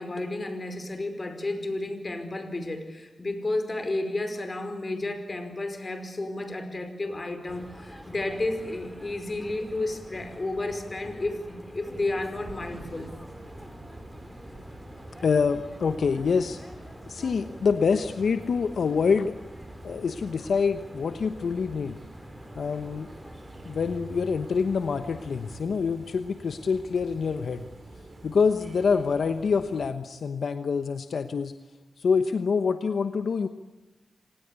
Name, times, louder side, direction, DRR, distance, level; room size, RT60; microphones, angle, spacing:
voice 1, 0.0-13.1, left 2 dB, 40° left, 8 dB, 5.0 m, -32 dB
sound 1, 7.5-25.6, equal, ahead, 4.3 m, -46 dB
sound 2, 11.9-29.9, right 2 dB, 40° right, 5.3 m, -47 dB
voice 2, 15.2-16.6 17.1-19.3 19.8-22.0 22.5-23.1 23.6-27.7 28.2-31.5 32.0-33.5, left 5 dB, 80° left, 9 dB, 1.1 m, -26 dB
26.5 x 19.0 x 8.4 m, 1.1 s
cardioid pair, 70°, 0 cm